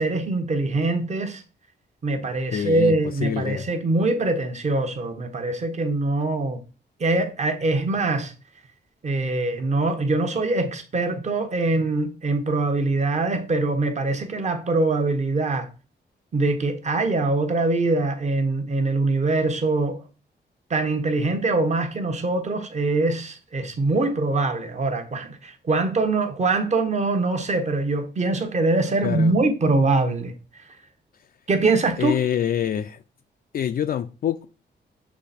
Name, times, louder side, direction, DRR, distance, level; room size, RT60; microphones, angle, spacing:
voice 1, 0.0-1.4 2.0-6.6 7.0-8.3 9.0-15.7 16.3-20.0 20.7-30.6 31.5-32.2, right 2 dB, 40° right, 1.0 m, -23 dB
voice 2, 2.5-3.7 29.0-29.4 32.0-33.0 33.5-34.5, left 9 dB, 55° left, 0.4 m, -26 dB
7.4 x 3.3 x 4.2 m
wide cardioid pair, 130°, 19 cm